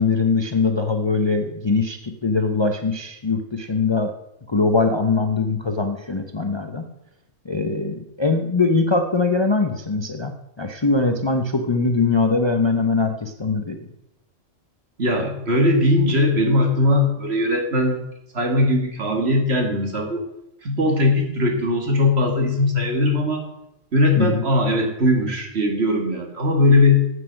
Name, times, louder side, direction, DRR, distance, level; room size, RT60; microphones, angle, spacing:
voice 1, 0.0-4.1 4.5-6.9 7.4-13.8 24.2-24.4, left 4 dB, 30° left, 5 dB, 0.6 m, -22 dB
voice 2, 15.0-18.0 18.3-20.3 20.6-23.5 23.9-27.0, left 2 dB, 55° right, 2 dB, 2.0 m, -19 dB
8.1 x 7.8 x 6.3 m, 0.86 s
omnidirectional pair, 1.3 m